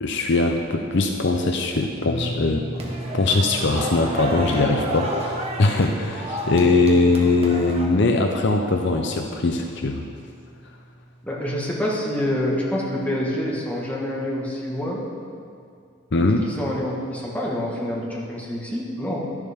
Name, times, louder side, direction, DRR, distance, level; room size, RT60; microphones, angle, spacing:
voice 1, 0.0-2.7 3.1-10.0 16.1-16.5, left 3 dB, 55° left, 3 dB, 0.6 m, -21 dB
sound 1, 2.0-14.2 14.5-14.7 16.4-16.5, equal, 40° left, 2.6 m, -39 dB
sound 2, 2.7-7.9, right 1 dB, 30° right, 1.1 m, -31 dB
voice 2, 11.2-15.1 16.5-19.4, left 1 dB, 5° left, -5 dB, 1.5 m, -27 dB
11.5 x 11.0 x 3.6 m, 2.3 s
head